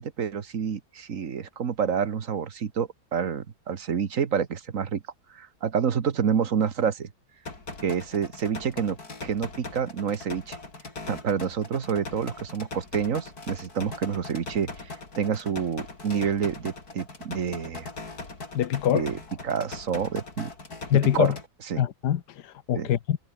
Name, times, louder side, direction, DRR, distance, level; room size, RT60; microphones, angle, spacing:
voice 1, 0.0-5.0 5.3-7.1 7.8-10.6 11.1-17.9 18.9-19.2 19.4-20.5 21.1-21.3 21.7-21.8 22.7-22.9, right 7 dB, 50° right, 1.7 m, -28 dB
sound 1, 7.5-21.5, left 3 dB, 60° left, 4.7 m, -40 dB
voice 2, 18.5-19.1 20.9-21.4 21.8-23.2, left 10 dB, 75° left, 1.6 m, -24 dB
omnidirectional pair, 1.8 m